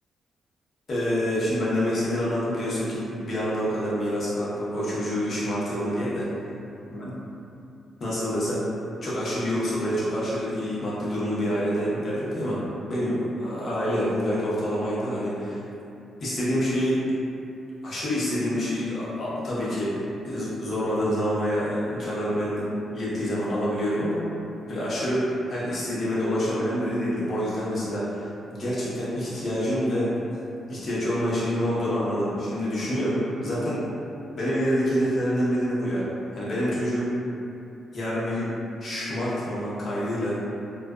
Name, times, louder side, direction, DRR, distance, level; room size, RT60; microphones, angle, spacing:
voice 1, 0.9-6.3 6.9-7.0 8.0-8.6 9.0-12.6 12.9-15.6 16.2-17.0 17.8-24.2 24.7-30.1 30.7-33.8 34.4-36.0 36.3-37.1 37.9-38.5 38.8-40.4, equal, 55° left, -9 dB, 0.9 m, -27 dB
2.4 x 2.2 x 2.3 m, 2.7 s
cardioid pair, 70°, 0 cm